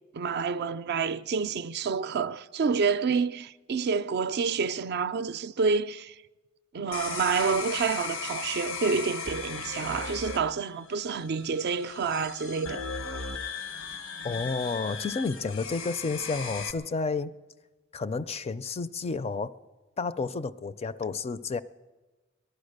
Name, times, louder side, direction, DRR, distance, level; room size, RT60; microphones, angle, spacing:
voice 1, 0.1-6.2 6.7-12.8, right 5 dB, 55° right, 0.4 m, -28 dB
sound 1, 6.9-16.7, left 4 dB, 90° left, 1.0 m, -37 dB
voice 2, 14.2-17.3 17.9-19.5 20.0-21.6, left 4 dB, 30° left, 0.4 m, -31 dB
18.5 x 11.5 x 6.5 m
head